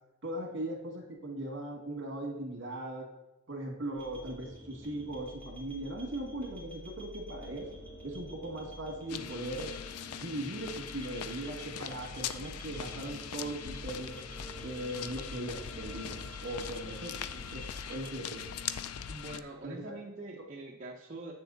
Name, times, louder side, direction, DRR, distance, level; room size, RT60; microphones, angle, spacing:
voice 1, 0.2-3.1 3.5-7.7 8.0-9.7 10.2-14.2 14.6-18.5 19.6-19.9, right 1 dB, 55° right, 2 dB, 2.0 m, -39 dB
sound 1, 4.0-18.1, equal, 10° left, 2.1 m, -49 dB
sound 2, 9.1-19.4, left 8 dB, 90° left, 0.5 m, -41 dB
voice 2, 19.1-21.3, right 2 dB, 35° right, -2 dB, 0.8 m, -44 dB
8.0 x 6.8 x 4.0 m, 1.0 s
head